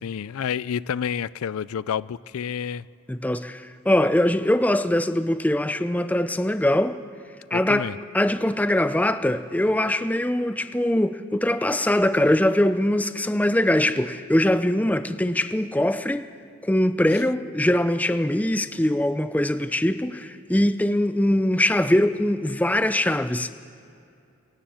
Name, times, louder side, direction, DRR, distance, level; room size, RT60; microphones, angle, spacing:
voice 1, 0.0-2.9 7.5-8.0, left 8 dB, 75° left, 19 dB, 0.4 m, -29 dB
voice 2, 3.1-7.0 7.5-7.9 8.1-16.3 16.6-23.5, left 1 dB, 5° left, 11 dB, 0.5 m, -22 dB
24.5 x 14.0 x 7.7 m, 2.6 s
head